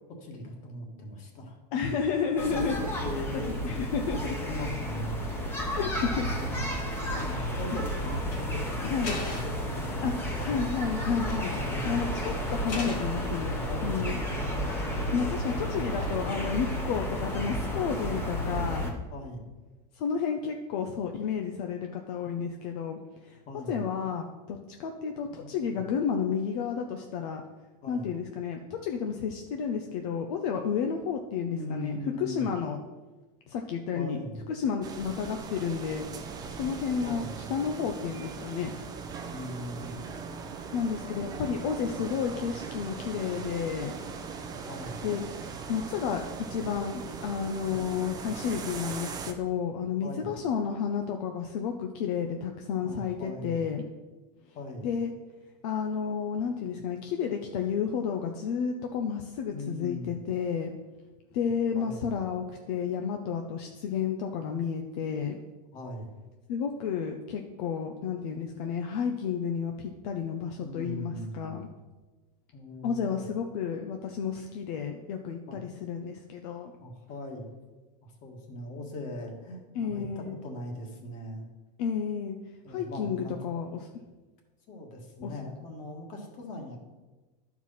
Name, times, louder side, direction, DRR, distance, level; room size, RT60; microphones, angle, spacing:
voice 1, 0.1-2.0 2.5-3.5 4.1-4.2 4.5-5.4 5.9-6.8 7.1-10.6 11.5-11.9 13.6-14.4 19.1-19.5 23.5-23.8 25.4-25.8 27.8-28.1 31.4-32.5 33.9-34.5 37.0-37.5 39.3-40.0 44.7-45.1 50.0-50.3 52.8-53.6 54.5-54.9 59.5-60.2 61.7-62.1 65.7-66.2 70.6-71.7 72.5-73.3 75.5-75.6 76.8-77.5 78.0-81.5 82.6-83.3 84.7-86.8, left 1 dB, 35° left, 2 dB, 1.7 m, -40 dB
voice 2, 1.7-2.8 3.5-4.3 5.7-6.3 8.8-9.2 10.0-10.1 10.4-11.5 11.8-14.2 15.1-18.9 20.0-23.0 23.3-23.4 23.7-27.4 27.9-32.8 33.5-34.2 34.5-36.0 36.5-38.7 40.7-44.0 45.0-45.2 45.7-46.2 46.5-53.8 54.8-55.1 55.6-60.7 61.3-65.4 66.5-71.7 72.8-76.7 79.7-80.4 81.8-82.4 82.7-83.8 85.2-85.3, left 7 dB, 65° left, 4 dB, 0.8 m, -31 dB
sound 1, 2.4-18.9, equal, 10° left, 1.1 m, -32 dB
sound 2, 8.3-8.4 9.0-9.7 11.0-11.5 11.8-12.0 12.7-13.2 13.7-14.4 16.0-16.4, left 3 dB, 90° left, 2.4 m, -39 dB
sound 3, 34.8-49.3, right 5 dB, 20° right, 0.6 m, -40 dB
11.0 x 4.7 x 5.6 m, 1.2 s
supercardioid pair, 160°, 21 cm